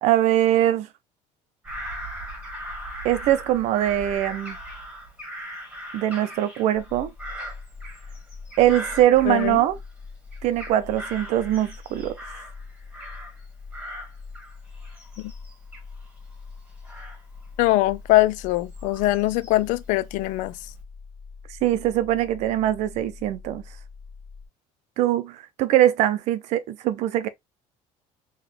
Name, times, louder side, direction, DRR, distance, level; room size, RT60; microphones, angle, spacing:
voice 1, 0.0-0.9 3.0-4.6 5.9-7.1 8.6-9.8 10.4-12.2 21.6-23.6 25.0-27.3, right 13 dB, 60° right, 0.6 m, -22 dB
Bird vocalization bird call bird song / Crow, 1.6-10.0 10.3-13.4 13.7-19.7 20.3-20.8, equal, 10° right, 1.3 m, -40 dB
sound 1, 6.7-24.5, left 4 dB, 10° left, 0.4 m, -43 dB
voice 2, 9.3-9.6 15.2-15.3 17.6-20.5, left 17 dB, 75° left, 0.4 m, -22 dB
4.0 x 3.1 x 3.0 m
cardioid pair, 170°, 13 cm